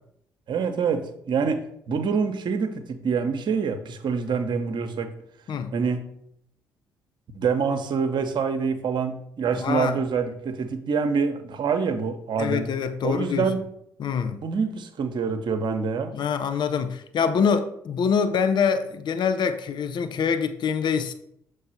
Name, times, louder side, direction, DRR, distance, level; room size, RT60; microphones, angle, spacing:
voice 1, 0.5-5.1 5.7-6.0 7.3-12.7 13.0-13.6 14.4-16.2, right 5 dB, 55° right, 0.9 m, -26 dB
voice 2, 9.6-10.0 12.4-13.5 14.0-14.4 16.1-21.1, left 6 dB, 55° left, 0.6 m, -25 dB
6.5 x 3.4 x 5.7 m
hypercardioid pair, 45°, 9 cm